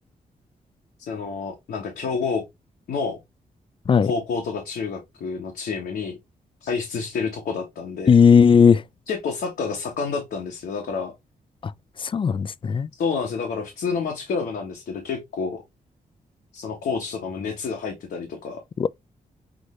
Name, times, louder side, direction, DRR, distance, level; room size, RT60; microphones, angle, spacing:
voice 1, 1.1-2.4 2.9-3.2 4.0-6.2 6.6-8.1 9.1-11.1 12.9-15.6 16.5-18.6, left 5 dB, 85° left, 1.1 m, -29 dB
voice 2, 8.1-8.8 12.0-12.9 18.8-18.9, left 6 dB, 35° left, 0.4 m, -16 dB
6.2 x 2.6 x 3.2 m
cardioid pair, 70°, 16 cm